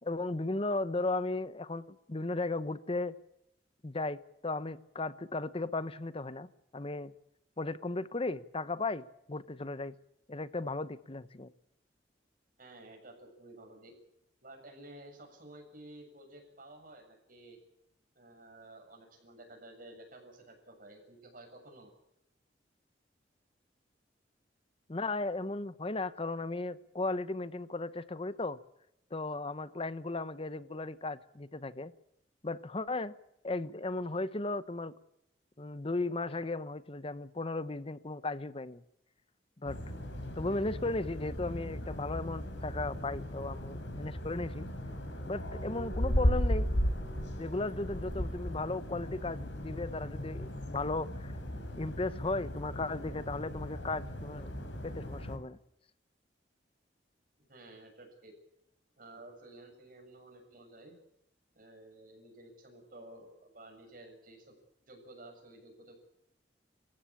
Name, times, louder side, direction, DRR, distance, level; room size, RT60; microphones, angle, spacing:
voice 1, 0.0-3.1 3.8-7.1 7.6-9.9 10.3-11.5 24.9-28.6 29.1-31.9 32.4-33.1 33.4-34.9 35.6-38.8 39.6-39.8 40.4-44.7 45.2-46.7 47.4-51.3 51.8-54.5 54.8-55.6, left 2 dB, 30° left, 15 dB, 0.9 m, -36 dB
voice 2, 12.6-13.9 14.4-17.6 18.2-21.9 57.4-58.3 59.0-60.9 61.5-64.6 64.9-65.9, right 1 dB, 50° right, 3 dB, 7.1 m, -53 dB
sound 1, 39.7-55.4, equal, 80° left, 5.4 m, -36 dB
27.0 x 15.5 x 8.6 m, 0.81 s
head